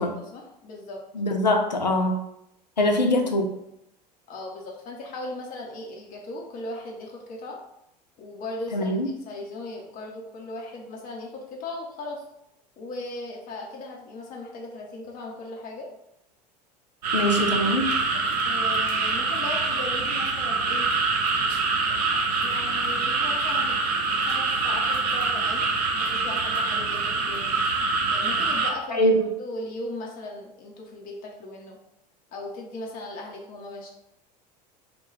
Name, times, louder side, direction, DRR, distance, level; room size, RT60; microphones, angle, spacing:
voice 1, 0.0-1.0 2.8-3.3 4.3-7.6 8.2-12.2 12.8-15.9 17.5-17.8 18.4-20.9 22.4-23.8 24.1-27.6 28.1-29.1 29.4-31.8 32.3-33.9, left 2 dB, 40° left, -1 dB, 0.8 m, -38 dB
voice 2, 1.2-2.2 2.8-3.5 8.7-9.1 17.1-17.9 28.9-29.2, left 1 dB, 90° left, 4 dB, 0.4 m, -22 dB
sound 1, 17.0-28.7, right 4 dB, 70° right, 0.6 m, -25 dB
2.9 x 2.2 x 3.2 m, 0.81 s
figure-of-eight pair, 70°, 21 cm